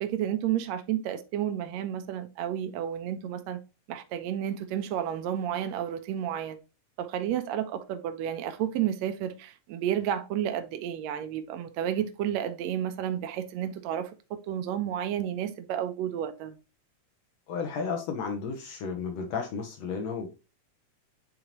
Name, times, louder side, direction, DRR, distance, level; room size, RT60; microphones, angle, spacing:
voice 1, 0.0-3.6 3.9-6.6 7.0-14.1 14.5-16.6, right 10 dB, 75° right, 1.8 m, -31 dB
voice 2, 17.5-20.3, left 5 dB, 70° left, 2.1 m, -33 dB
9.0 x 3.8 x 3.0 m
omnidirectional pair, 3.4 m